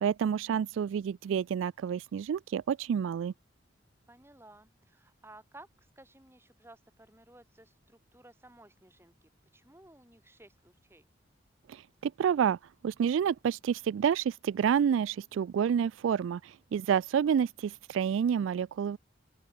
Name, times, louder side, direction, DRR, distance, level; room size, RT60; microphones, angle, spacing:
voice 1, 0.0-3.3 11.7-12.6 12.8-19.0, right 8 dB, 90° right, 0.3 m, -29 dB
voice 2, 4.1-11.0, right 2 dB, 15° right, 4.3 m, -56 dB
open air
head